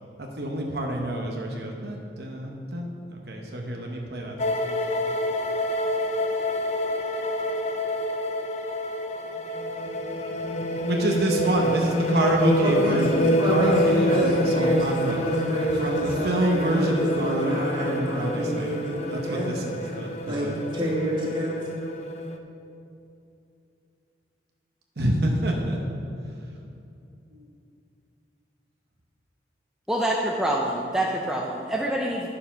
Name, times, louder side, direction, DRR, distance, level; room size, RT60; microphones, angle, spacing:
voice 1, 0.2-4.4 10.8-13.1 13.5-15.2 15.8-18.7 19.1-20.5 25.0-26.0 27.3-27.5, right 1 dB, 65° right, 0 dB, 1.0 m, -27 dB
sound 1, 4.4-22.4, equal, 40° left, 0.6 m, -27 dB
voice 2, 12.6-19.6 19.8-20.0 20.3-20.5 20.7-21.6, equal, 30° right, -4 dB, 2.1 m, -28 dB
voice 3, 29.9-32.3, right 1 dB, 5° right, -3 dB, 0.6 m, -26 dB
9.8 x 6.8 x 5.7 m, 2.6 s
head